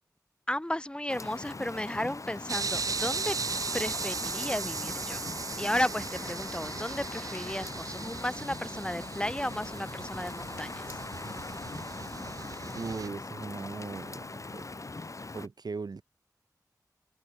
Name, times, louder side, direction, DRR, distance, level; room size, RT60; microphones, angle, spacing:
voice 1, 0.5-3.4 3.7-5.3 5.6-10.9, left 1 dB, 15° left, 0.9 m, -34 dB
Rain, 1.1-15.5, left 3 dB, 50° left, 1.9 m, -41 dB
sound 1, 2.5-13.1, right 4 dB, 55° right, 0.4 m, -37 dB
voice 2, 12.7-14.3 14.5-14.7 15.3-16.0, right 4 dB, 75° right, 2.2 m, -38 dB
wide cardioid pair, 70°, 7 cm